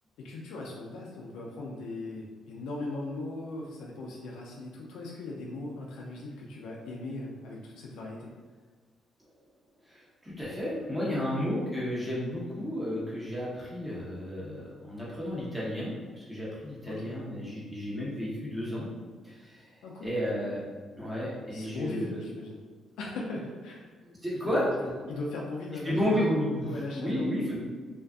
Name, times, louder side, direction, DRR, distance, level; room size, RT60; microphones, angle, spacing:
voice 1, 0.2-8.3 11.3-11.4 16.9-17.1 19.8-20.1 21.5-22.6 23.0-23.9 24.6-26.3 26.7-27.3, left 2 dB, 85° left, -3 dB, 0.3 m, -39 dB
voice 2, 9.9-18.9 19.2-19.7 20.0-22.2 24.0-24.7 25.8-27.6, equal, 10° right, -7 dB, 0.9 m, -32 dB
2.5 x 2.3 x 2.3 m, 1.5 s
cardioid pair, 90°, 0 cm